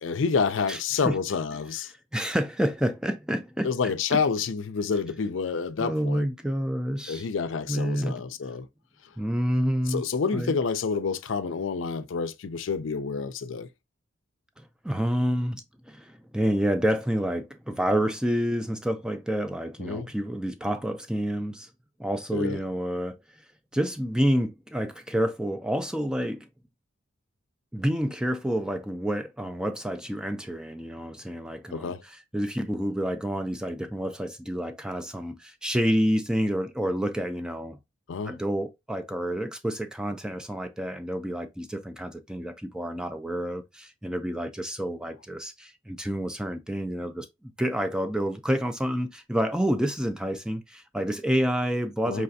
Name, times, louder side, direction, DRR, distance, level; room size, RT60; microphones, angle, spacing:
voice 1, 0.0-1.9 3.6-6.2 7.1-8.7 9.9-13.7 19.8-20.1 22.3-22.6 31.7-32.0 38.1-38.4 52.1-52.2, left 5 dB, 65° left, 0.4 m, -28 dB
voice 2, 2.1-3.7 4.1-4.2 5.8-7.3 7.7-8.1 9.2-10.0 10.3-10.5 14.6-21.7 22.0-23.4 23.7-26.5 27.7-37.8 38.3-52.2, equal, 5° right, 0.3 m, -28 dB
4.7 x 3.3 x 2.6 m
head